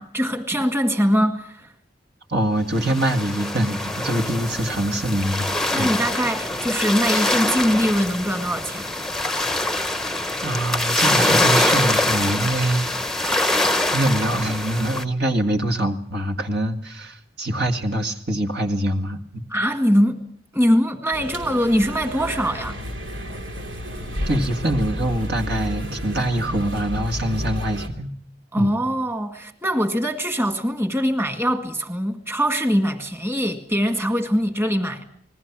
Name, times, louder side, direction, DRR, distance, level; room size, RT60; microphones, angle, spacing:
voice 1, 0.0-1.7 5.7-8.9 19.5-20.2 20.5-22.8 28.5-35.0, equal, 15° right, 6 dB, 1.9 m, -22 dB
voice 2, 2.3-5.5 5.8-5.9 10.4-12.9 13.9-19.4 24.3-28.1 28.6-28.7, right 1 dB, 60° right, 6 dB, 2.1 m, -24 dB
sound 1, 2.8-15.0, left 1 dB, ahead, 0.9 m, -24 dB
sound 2, 21.1-27.9, equal, 80° right, 3.3 m, -31 dB
28.0 x 21.0 x 6.1 m, 0.62 s
head